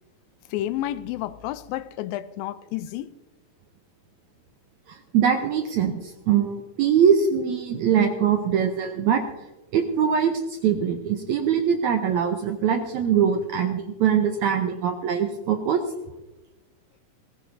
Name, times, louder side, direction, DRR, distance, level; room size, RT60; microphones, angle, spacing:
voice 1, 0.5-3.1, left 13 dB, 90° left, 2.4 m, -30 dB
voice 2, 4.9-9.2 9.7-15.8, right 8 dB, 75° right, 1.8 m, -22 dB
19.5 x 16.5 x 2.7 m
omnidirectional pair, 4.0 m